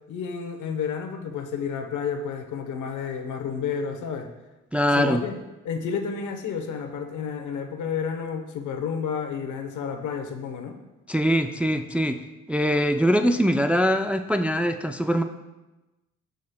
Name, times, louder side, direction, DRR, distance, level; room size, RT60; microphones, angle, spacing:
voice 1, 0.1-4.3 4.9-5.3 5.6-10.8, left 6 dB, 75° left, 5 dB, 1.0 m, -31 dB
voice 2, 4.7-5.2 11.1-12.2 12.5-15.2, equal, 5° right, 7 dB, 0.3 m, -22 dB
15.5 x 5.3 x 2.3 m, 1.1 s
cardioid pair, 90°, 30 cm